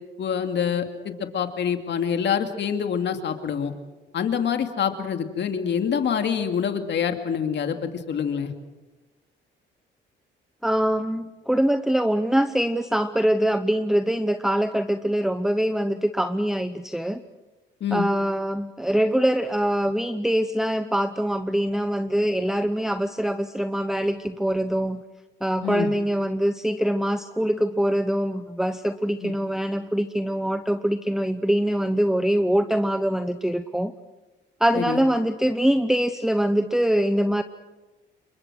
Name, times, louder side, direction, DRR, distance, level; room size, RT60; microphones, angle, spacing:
voice 1, 0.2-3.7 4.1-8.5 17.8-18.1 25.6-25.9 29.2-29.3 34.7-35.0, left 7 dB, 65° left, 6 dB, 2.5 m, -26 dB
voice 2, 10.6-17.2 17.9-25.0 25.4-33.9 34.6-37.4, equal, ahead, 10 dB, 0.9 m, -23 dB
28.0 x 23.5 x 6.3 m, 1.2 s
cardioid pair, 90°, 20 cm